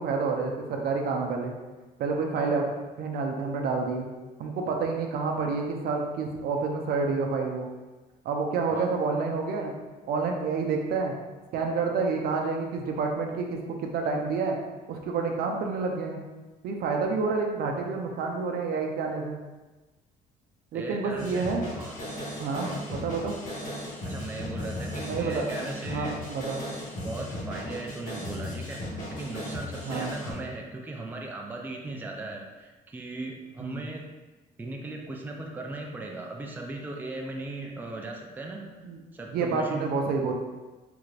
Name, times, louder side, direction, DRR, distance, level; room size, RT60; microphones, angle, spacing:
voice 1, 0.0-1.5 2.0-2.7 3.0-4.1 4.4-7.7 8.2-9.7 10.1-11.1 11.5-14.6 14.9-16.2 16.6-19.4 20.7-21.6 22.4-23.4 25.0-25.4 25.9-26.6 29.8-30.1 33.6-33.8 38.8-39.0 39.3-40.3, right 4 dB, 65° right, 2 dB, 0.5 m, -29 dB
voice 2, 20.7-21.4 21.7-22.0 22.6-23.0 24.1-26.2 26.9-28.8 29.1-34.1 34.6-38.7 39.1-40.0, right 2 dB, 10° right, 0 dB, 0.4 m, -38 dB
sound 1, 21.2-30.3, left 1 dB, 50° left, 1.3 m, -36 dB
3.4 x 2.4 x 3.2 m, 1.2 s
cardioid pair, 110°, 17 cm